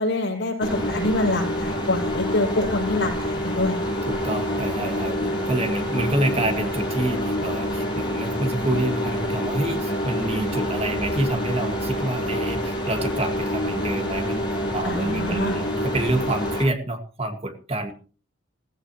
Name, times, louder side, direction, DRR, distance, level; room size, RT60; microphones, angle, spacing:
voice 1, 0.0-3.8 14.8-15.6, left 2 dB, 60° left, -1 dB, 6.1 m, -25 dB
sound 1, 0.6-16.6, equal, 25° left, 6.5 m, -27 dB
voice 2, 4.1-14.5 14.7-17.9, right 1 dB, 30° right, 6 dB, 1.9 m, -27 dB
16.0 x 16.0 x 3.1 m, 0.37 s
head